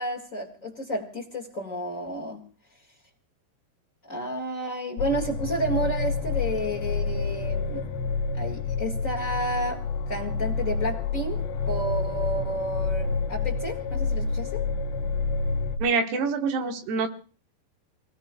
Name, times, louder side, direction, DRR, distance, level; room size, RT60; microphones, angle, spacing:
voice 1, 0.0-2.4 4.1-7.9 8.3-9.8 10.1-14.6, right 1 dB, 60° left, 0 dB, 0.8 m, -31 dB
sound 1, 5.0-15.8, left 4 dB, 80° left, 3.1 m, -28 dB
voice 2, 15.8-17.1, right 4 dB, 75° right, 6 dB, 3.2 m, -25 dB
29.0 x 18.5 x 2.3 m, 0.37 s
omnidirectional pair, 4.8 m